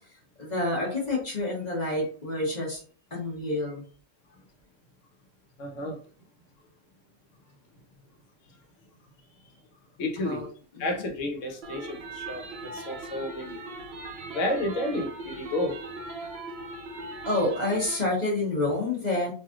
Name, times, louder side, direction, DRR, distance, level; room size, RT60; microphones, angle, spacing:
voice 1, 0.4-2.8 3.1-3.8 10.2-10.5 10.7-11.1 17.2-19.3, left 2 dB, 35° left, 1.2 m, -28 dB
voice 2, 5.6-6.0 10.0-10.5 10.8-13.6 14.3-15.7, left 1 dB, 75° left, 1.1 m, -31 dB
sound 1, 11.6-18.0, right 2 dB, 60° right, 0.8 m, -39 dB
3.1 x 2.6 x 2.4 m
omnidirectional pair, 1.3 m